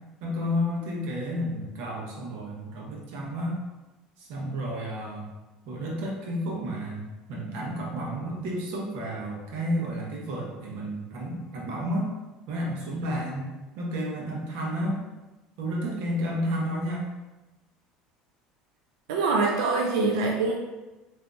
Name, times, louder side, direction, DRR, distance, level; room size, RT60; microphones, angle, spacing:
voice 1, 0.2-3.6 4.2-5.3 5.6-12.1 12.5-13.5 13.8-15.0 15.6-17.1, equal, 75° right, -2 dB, 0.9 m, -31 dB
voice 2, 19.1-20.6, right 3 dB, 90° right, 0 dB, 0.4 m, -24 dB
3.7 x 2.6 x 2.4 m, 1.1 s
supercardioid pair, 100°, 3 cm